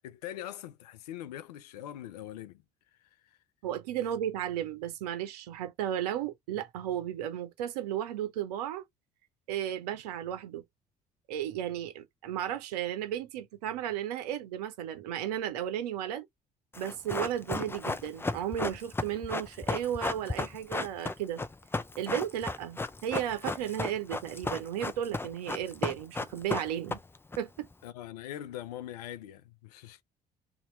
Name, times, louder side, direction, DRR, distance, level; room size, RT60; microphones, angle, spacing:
voice 1, 0.0-2.6 3.0-3.4 27.8-30.0, left 12 dB, 80° left, 0.5 m, -42 dB
voice 2, 3.6-8.8 9.5-10.6 11.3-16.3 16.7-21.4 22.0-27.0 27.4-27.7, right 10 dB, 75° right, 0.8 m, -34 dB
Run, 16.7-27.4 27.6-27.7, left 3 dB, 10° left, 0.5 m, -34 dB
2.8 x 2.6 x 3.9 m
hypercardioid pair, 55°, 20 cm